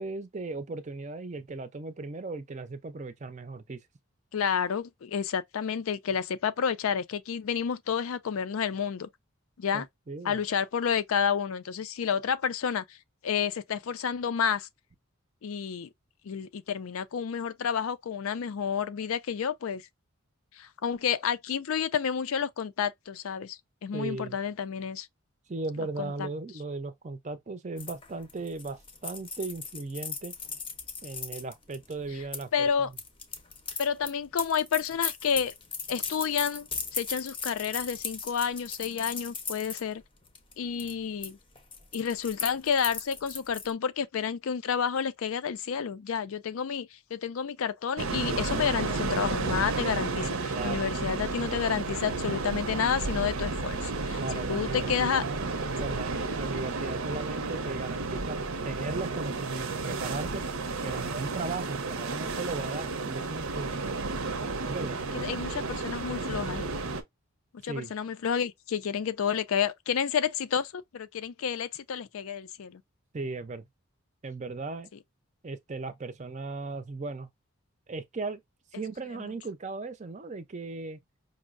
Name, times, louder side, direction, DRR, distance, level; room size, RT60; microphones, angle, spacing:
voice 1, 0.0-3.8 9.7-10.4 23.9-24.4 25.5-30.3 31.0-32.9 50.5-50.9 54.1-60.5 60.8-64.0 64.7-65.0 67.6-67.9 73.1-73.7 74.2-74.9 75.4-77.3 77.9-78.4 78.7-81.0, right 3 dB, 30° right, 0.5 m, -37 dB
voice 2, 4.3-9.1 9.6-9.9 10.2-13.0 13.2-14.7 15.4-15.9 16.2-19.8 20.6-25.1 26.0-26.3 32.5-32.9 33.8-35.5 35.9-36.7 36.9-40.0 40.6-41.4 41.9-54.2 54.5-55.2 55.8-55.9 65.1-66.7 67.6-72.8, left 7 dB, 75° left, 0.4 m, -30 dB
sound 1, 27.8-32.4 32.9-39.8 40.3-40.5 40.8-41.3 41.6-43.7, left 5 dB, 25° left, 0.6 m, -37 dB
sound 2, 48.0-67.0, right 3 dB, 75° right, 0.6 m, -32 dB
5.2 x 2.0 x 2.4 m
head